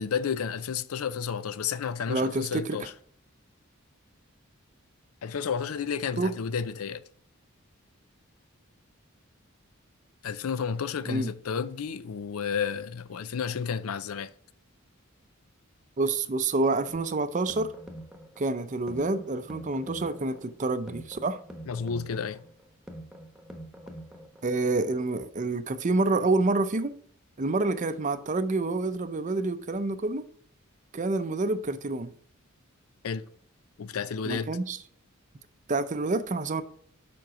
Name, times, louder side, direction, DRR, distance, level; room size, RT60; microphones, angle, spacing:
voice 1, 0.0-3.0 5.2-7.0 10.2-14.3 21.6-22.5 33.0-33.3 33.8-34.6, left 6 dB, 85° left, 0.5 m, -31 dB
voice 2, 2.1-2.8 6.2-6.3 11.1-11.3 16.0-17.7 18.4-21.4 24.4-26.9 27.4-30.3 30.9-32.1 34.2-34.8 35.7-36.6, right 3 dB, 35° right, 0.5 m, -28 dB
sound 1, 16.6-24.6, right 1 dB, ahead, 1.0 m, -45 dB
7.5 x 5.2 x 4.8 m
head